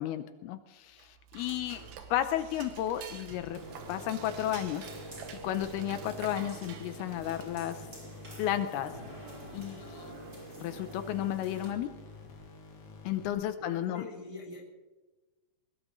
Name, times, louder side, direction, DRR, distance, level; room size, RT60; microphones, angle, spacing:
voice 1, 0.0-1.8 2.1-3.6 3.9-5.1 5.4-7.9 8.4-8.9 9.5-10.1 10.6-11.9 13.0-14.1, left 11 dB, 80° left, 10 dB, 2.6 m, -33 dB
Dishes pots and pans / Cutlery silverware, 0.9-7.8, right 7 dB, 70° right, 2.9 m, -49 dB
voice 2, 1.5-2.0 13.6-14.6, left 2 dB, 10° right, -1 dB, 1.9 m, -45 dB
sound 1, 3.3-13.3, left 4 dB, 60° left, 4.0 m, -50 dB
sound 2, 3.5-11.7, right 1 dB, 25° right, 5.3 m, -47 dB
21.0 x 20.5 x 3.1 m, 1.2 s
omnidirectional pair, 4.7 m